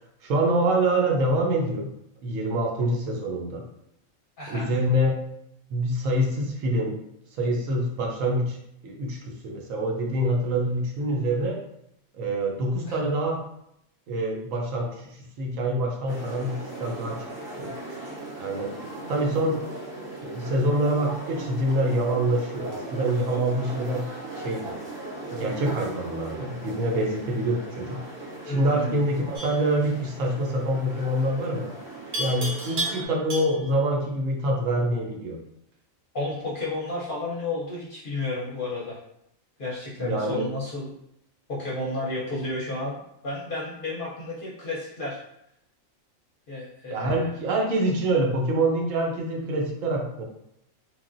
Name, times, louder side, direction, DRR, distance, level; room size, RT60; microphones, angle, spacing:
voice 1, 0.2-1.9 2.2-3.6 4.5-5.2 5.7-7.0 7.4-8.6 8.8-11.6 12.1-13.4 14.1-17.3 17.6-17.7 18.4-18.7 19.1-19.6 20.2-24.1 24.4-24.8 25.3-28.0 28.4-31.7 32.2-35.4 40.0-40.5 46.9-50.2, right 1 dB, 75° right, 0 dB, 1.0 m, -26 dB
voice 2, 4.4-4.7 12.8-13.1 28.4-28.9 36.1-39.0 39.6-40.9 41.5-45.2 46.5-47.3, left 2 dB, 55° left, -5 dB, 0.7 m, -32 dB
sound 1, 16.1-33.1, right 2 dB, 30° right, 0.5 m, -38 dB
Livestock farm animals working animals, 29.4-29.7 32.1-33.8, right 1 dB, 55° right, 0.9 m, -32 dB
3.2 x 2.5 x 2.5 m, 0.77 s
omnidirectional pair, 1.4 m